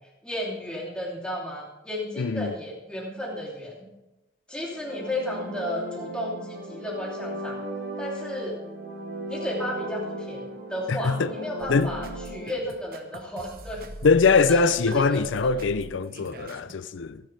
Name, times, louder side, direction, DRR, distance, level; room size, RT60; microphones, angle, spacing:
voice 1, 0.2-3.9 4.5-7.6 8.0-8.6 9.3-13.9 14.5-15.5, left 1 dB, 5° left, 2.9 m, -33 dB
voice 2, 2.2-2.5 10.9-11.3 11.7-11.9 14.0-17.2, left 4 dB, 90° left, 0.5 m, -22 dB
sound 1, 4.6-12.5, right 1 dB, 80° right, 4.5 m, -37 dB
sound 2, 11.6-16.7, right 1 dB, 50° right, 1.0 m, -41 dB
24.5 x 10.5 x 3.4 m
head